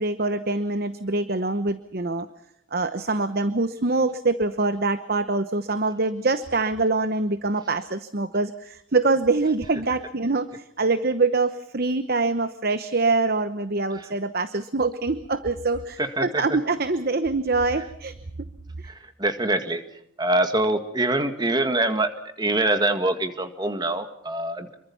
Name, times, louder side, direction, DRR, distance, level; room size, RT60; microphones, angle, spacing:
voice 1, 0.0-2.3 2.7-18.1, right 3 dB, 45° right, 12 dB, 1.0 m, -24 dB
voice 2, 16.0-16.6 17.8-17.9 18.8-22.1 22.4-24.8, right 2 dB, 20° right, 8 dB, 1.9 m, -25 dB
27.5 x 23.5 x 5.7 m, 0.74 s
head